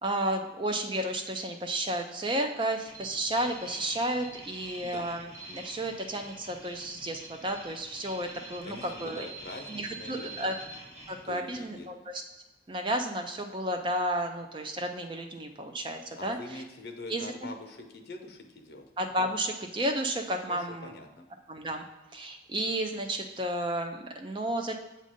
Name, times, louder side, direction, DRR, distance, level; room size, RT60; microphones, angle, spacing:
voice 1, 0.0-9.3 9.7-10.5 11.1-12.1 12.7-16.4 17.1-17.2 19.0-20.9 21.5-21.8 22.1-24.7, right 1 dB, 25° right, 4 dB, 0.4 m, -32 dB
sound 1, 2.8-11.3, right 2 dB, 45° right, 1.9 m, -46 dB
voice 2, 8.6-10.6 11.2-11.9 16.2-18.8 20.5-21.3, left 2 dB, 70° left, 4 dB, 0.8 m, -44 dB
7.4 x 2.6 x 4.9 m, 1.1 s
head